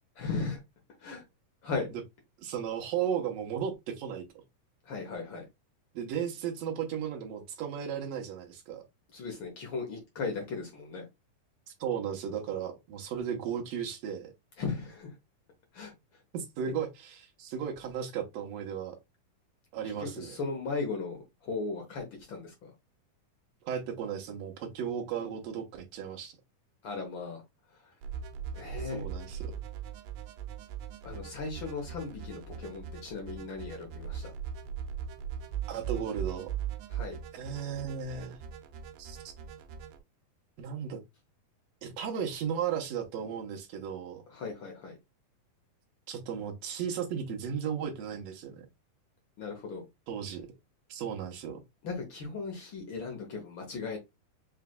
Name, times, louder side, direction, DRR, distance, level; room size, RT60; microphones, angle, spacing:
voice 1, 0.2-0.6 1.0-1.2 1.6-1.9 4.8-5.5 9.1-11.1 14.6-15.2 15.7-15.9 16.6-16.7 19.8-22.7 26.8-27.4 27.8-27.9 28.5-29.1 31.0-34.3 36.9-37.2 44.3-45.0 49.4-49.8 51.8-54.0, left 4 dB, 75° left, 1.1 m, -37 dB
voice 2, 2.4-4.2 5.9-8.8 11.8-14.3 16.3-19.0 19.7-20.4 23.6-26.3 28.8-29.5 35.7-36.5 37.3-38.4 39.0-39.2 40.6-41.0 41.8-44.2 46.1-48.7 50.1-50.5 50.9-51.6, right 8 dB, 70° right, 1.8 m, -35 dB
sound 1, 28.0-40.0, right 8 dB, 85° right, 2.4 m, -40 dB
5.9 x 3.2 x 2.2 m
omnidirectional pair, 3.9 m